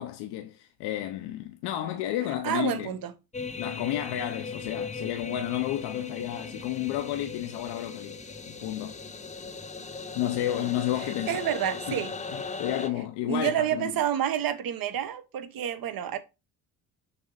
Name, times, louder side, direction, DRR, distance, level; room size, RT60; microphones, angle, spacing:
voice 1, 0.0-2.9 3.6-8.2 8.5-9.0 10.1-11.4 11.9-12.0 12.3-13.9, left 13 dB, 85° left, 0.8 m, -31 dB
voice 2, 2.4-3.1 11.3-12.1 13.3-16.2, right 10 dB, 60° right, 1.2 m, -29 dB
sound 1, 3.3-12.9, left 4 dB, 20° left, 0.9 m, -38 dB
6.9 x 3.5 x 5.1 m
supercardioid pair, 75°, 39 cm